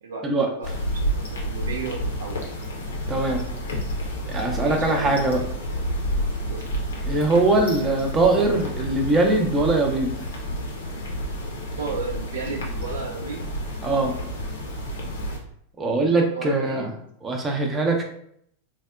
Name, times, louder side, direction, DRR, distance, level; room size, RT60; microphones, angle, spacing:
sound 1, 0.6-15.4, equal, 70° left, 0.8 m, -30 dB
voice 1, 0.6-2.5 4.5-5.3 6.5-6.7 11.8-13.5 15.9-16.9, right 5 dB, 65° right, 2 dB, 0.4 m, -34 dB
voice 2, 3.1-3.4 4.3-5.4 7.0-10.1 13.8-14.1 15.8-16.9 17.2-18.0, right 2 dB, 20° right, 2 dB, 0.6 m, -21 dB
4.0 x 2.1 x 2.3 m, 0.69 s
figure-of-eight pair, 90°, 0 cm